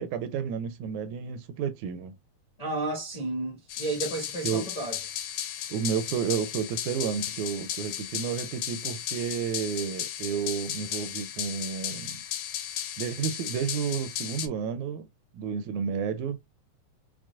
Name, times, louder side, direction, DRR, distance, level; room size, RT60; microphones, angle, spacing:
voice 1, 0.0-2.1 4.4-4.7 5.7-12.2 13.0-15.1 15.3-16.4, right 7 dB, 80° right, 1.8 m, -31 dB
voice 2, 2.6-5.0, right 2 dB, 30° left, 0.6 m, -32 dB
sound 1, 3.7-14.5, left 11 dB, 80° left, 1.8 m, -35 dB
6.0 x 2.1 x 2.3 m
omnidirectional pair, 3.5 m